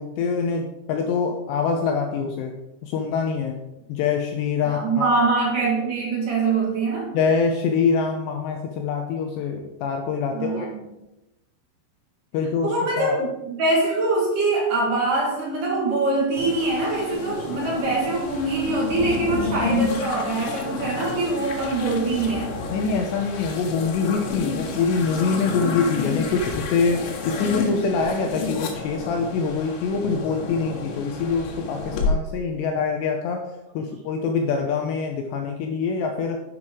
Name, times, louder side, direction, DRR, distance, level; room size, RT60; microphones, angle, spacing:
voice 1, 0.0-2.5 2.8-3.6 3.9-5.1 7.1-10.7 12.3-13.2 22.7-36.4, left 5 dB, 90° left, 3 dB, 2.5 m, -25 dB
voice 2, 4.7-7.1 10.3-10.9 12.6-22.6, right 2 dB, 55° right, -3 dB, 2.7 m, -23 dB
sound 1, 16.4-32.1, left 3 dB, 70° left, 3.6 m, -30 dB
11.0 x 9.1 x 3.7 m, 0.95 s
omnidirectional pair, 5.8 m